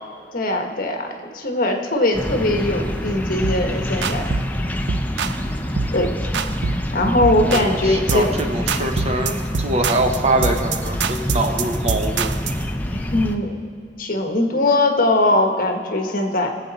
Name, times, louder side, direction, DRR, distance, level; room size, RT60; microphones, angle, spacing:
voice 1, 0.3-4.2 5.9-6.1 6.9-8.3 12.9-13.5 14.0-16.5, left 2 dB, 55° left, 4 dB, 1.3 m, -20 dB
sound 1, 2.1-13.4, equal, 10° left, 0.6 m, -26 dB
sound 2, 3.4-3.7 4.0-4.5 4.9-5.4 5.8-6.0 6.3-6.9 7.2-7.7 8.1-8.4 8.7-12.6, right 5 dB, 75° right, 0.5 m, -25 dB
voice 2, 7.4-12.3, right 2 dB, 35° right, 4 dB, 1.0 m, -23 dB
21.0 x 7.8 x 4.1 m, 2.5 s
head